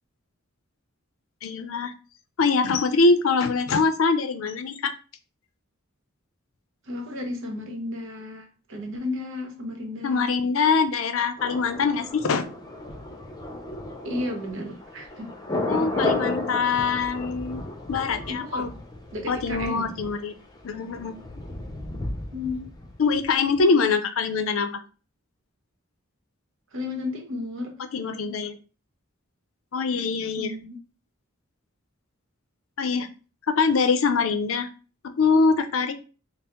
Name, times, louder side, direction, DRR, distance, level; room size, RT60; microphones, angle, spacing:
voice 1, 1.4-1.9 2.4-4.9 10.0-12.5 15.7-17.6 17.9-18.7 19.3-20.3 20.6-21.2 23.0-24.8 27.9-28.6 29.7-30.5 32.8-33.1 33.5-34.7 35.0-36.0, left 4 dB, 75° left, 0.5 m, -23 dB
voice 2, 6.9-10.3 14.0-15.3 18.3-18.7 19.1-19.9 22.3-22.7 26.7-27.8 30.4-30.8, left 2 dB, 70° right, 0.9 m, -33 dB
Thunder, 11.4-23.3 23.5-23.6, left 2 dB, 20° left, 0.6 m, -33 dB
5.4 x 2.0 x 2.9 m
head